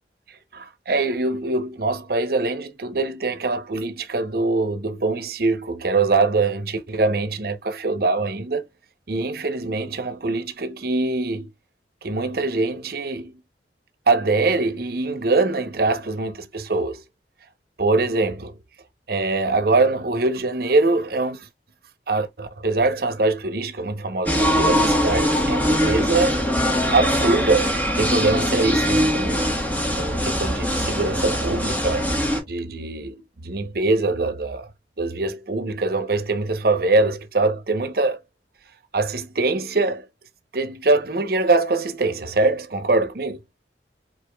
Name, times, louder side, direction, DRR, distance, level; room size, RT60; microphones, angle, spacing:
voice 1, 0.3-8.6 9.1-11.5 12.0-13.4 14.1-17.0 17.8-18.6 19.1-21.5 22.1-26.3 26.9-29.5 30.0-32.1 32.5-34.7 35.0-38.2 38.9-40.1 40.5-43.4, right 3 dB, 60° right, 0.9 m, -23 dB
sound 1, 24.3-32.4, equal, 10° left, 1.2 m, -22 dB
5.1 x 3.9 x 2.3 m
head